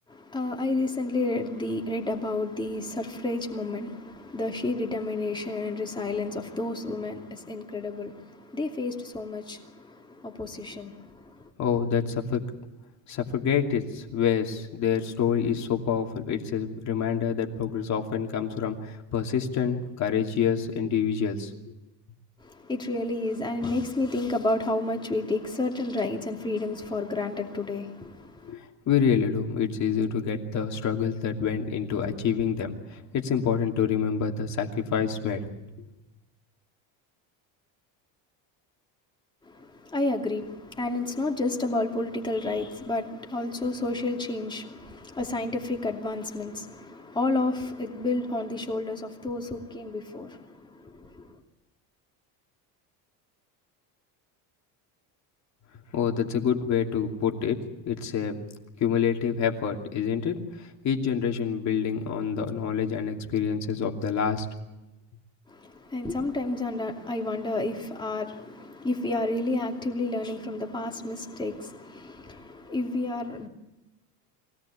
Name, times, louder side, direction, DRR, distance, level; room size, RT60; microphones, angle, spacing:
voice 1, 0.1-11.5 22.4-28.5 39.5-51.4 65.5-73.5, left 2 dB, 10° left, 2.7 m, -31 dB
voice 2, 11.6-12.4 13.1-21.5 28.4-35.5 55.9-58.5 58.8-64.5, left 7 dB, 45° left, 2.8 m, -27 dB
23.5 x 17.5 x 8.4 m
cardioid pair, 140°, 40 cm